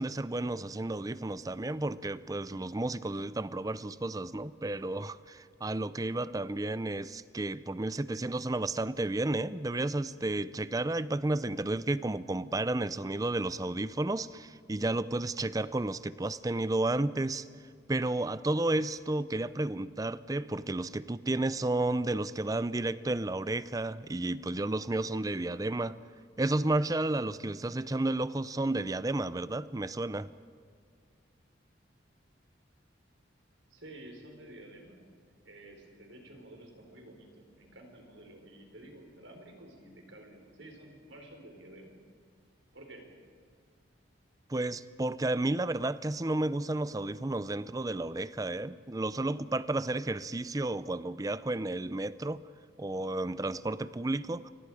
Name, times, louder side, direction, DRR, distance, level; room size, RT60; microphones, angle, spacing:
voice 1, 0.0-17.5 17.9-26.0 26.4-30.3 44.5-52.4 52.8-54.5, right 2 dB, 20° right, 16 dB, 0.5 m, -32 dB
voice 2, 33.7-35.0 35.4-42.0 42.7-43.0, right 1 dB, 80° right, 2 dB, 4.7 m, -51 dB
29.0 x 25.0 x 5.0 m, 2.1 s
head